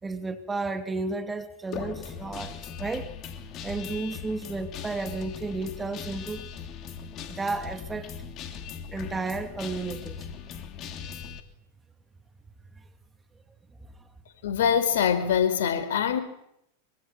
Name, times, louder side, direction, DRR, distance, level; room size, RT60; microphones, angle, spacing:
voice 1, 0.0-3.2 3.6-6.4 7.3-8.1 8.9-10.3, right 3 dB, 10° right, 2.7 m, -33 dB
Guitar, 1.7-11.4, left 7 dB, 35° left, 3.4 m, -39 dB
voice 2, 14.4-16.2, left 8 dB, 60° left, 4.2 m, -23 dB
25.5 x 25.0 x 7.5 m
figure-of-eight pair, 90°, 0 cm